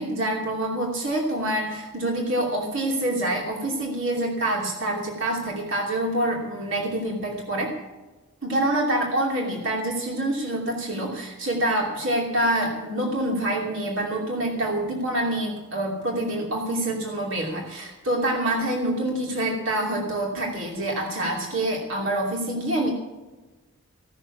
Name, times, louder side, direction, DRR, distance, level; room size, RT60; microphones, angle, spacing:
voice 1, 0.0-7.7 8.4-22.9, right 1 dB, 60° right, -2 dB, 2.7 m, -26 dB
17.0 x 6.6 x 8.3 m, 1.2 s
head